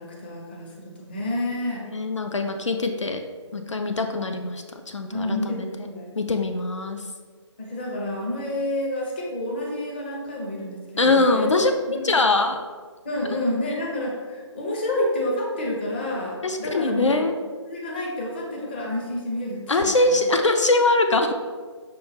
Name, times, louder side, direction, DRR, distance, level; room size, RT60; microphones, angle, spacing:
voice 1, 0.0-1.9 5.1-6.1 7.6-11.6 11.8-12.3 13.0-17.4 17.6-20.2, left 1 dB, 20° left, -2 dB, 0.5 m, -29 dB
voice 2, 1.9-3.2 3.5-5.6 6.2-7.0 11.0-11.7 12.0-12.6 13.2-13.4 16.4-17.3 19.7-21.3, left 2 dB, 75° left, 6 dB, 0.4 m, -22 dB
5.9 x 2.2 x 3.3 m, 1.5 s
figure-of-eight pair, 145°, 16 cm